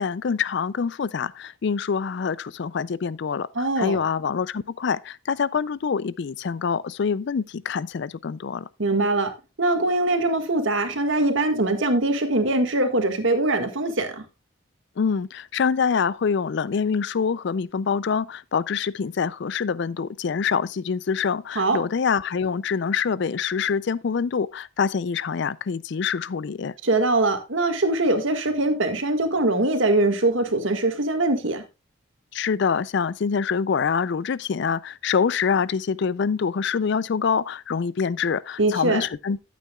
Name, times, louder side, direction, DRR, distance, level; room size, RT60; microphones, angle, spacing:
voice 1, 0.0-8.7 15.0-26.7 32.3-39.4, left 6 dB, 55° left, 0.4 m, -25 dB
voice 2, 3.5-4.0 8.8-9.3 9.6-14.2 21.5-21.8 26.8-31.6 38.6-39.0, right 2 dB, 70° right, 1.7 m, -22 dB
13.0 x 8.4 x 2.3 m
head